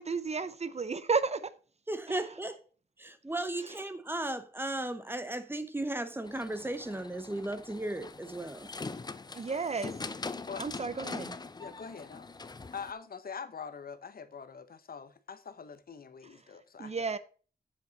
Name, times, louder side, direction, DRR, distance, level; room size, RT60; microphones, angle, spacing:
voice 1, 0.0-1.5 2.1-2.2 9.3-9.9 10.6-11.4 16.8-17.2, right 4 dB, 40° right, 0.6 m, -32 dB
voice 2, 1.9-2.6 3.0-8.7, right 1 dB, 15° right, 0.9 m, -35 dB
sound 1, 6.2-12.9, left 3 dB, 25° left, 0.5 m, -42 dB
voice 3, 11.6-12.3 12.7-17.2, left 6 dB, 60° left, 0.9 m, -44 dB
7.9 x 7.2 x 4.0 m
wide cardioid pair, 150°, 17 cm